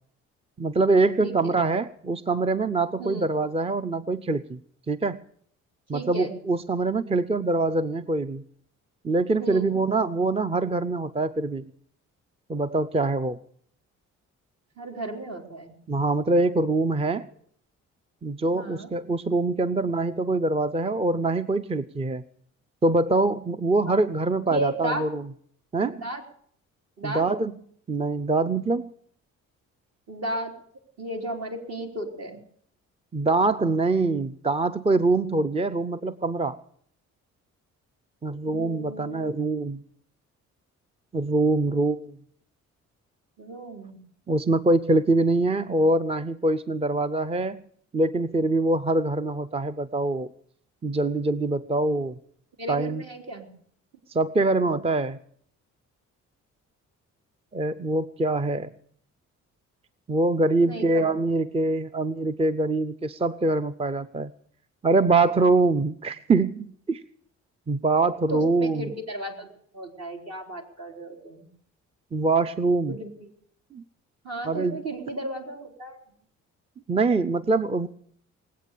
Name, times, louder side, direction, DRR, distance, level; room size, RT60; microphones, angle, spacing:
voice 1, 0.6-4.6 4.9-5.2 5.9-8.4 9.0-11.7 12.5-13.4 15.9-17.3 18.2-22.2 22.8-25.3 25.7-26.0 27.0-27.5 27.9-28.9 33.1-36.6 38.2-39.8 41.1-42.1 44.3-47.6 47.9-50.3 50.8-52.2 52.7-53.0 54.1-55.2 57.5-58.7 60.1-64.3 64.8-67.0 67.7-68.9 72.1-73.0 73.7-73.8 74.4-74.8 76.9-77.9, right 3 dB, 20° right, 13 dB, 0.5 m, -24 dB
voice 2, 1.2-1.5 3.0-3.3 5.9-6.3 9.4-9.8 14.8-15.7 18.5-18.9 23.9-24.0 24.5-25.1 26.0-26.2 27.0-27.2 30.1-30.5 31.0-32.4 38.5-39.2 43.4-44.0 52.6-53.5 60.6-61.0 68.3-69.5 69.7-71.5 72.9-73.3 74.2-76.0, right 1 dB, 55° right, 2 dB, 3.7 m, -34 dB
20.0 x 8.4 x 8.3 m, 0.62 s
cardioid pair, 90°, 30 cm